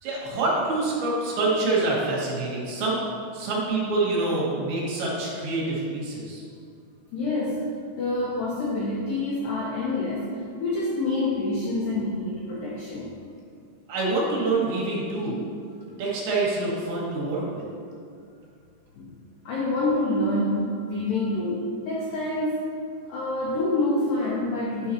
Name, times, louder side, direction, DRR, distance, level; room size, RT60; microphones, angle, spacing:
voice 1, 0.0-6.4 13.9-15.5 16.0-17.6, right 2 dB, 70° right, -5 dB, 3.3 m, -26 dB
voice 2, 7.1-7.7 8.0-13.1 19.0-19.2 19.5-22.7 23.0-24.9, left 2 dB, 85° left, -6 dB, 1.9 m, -27 dB
9.9 x 5.5 x 2.9 m, 2.3 s
omnidirectional pair, 5.5 m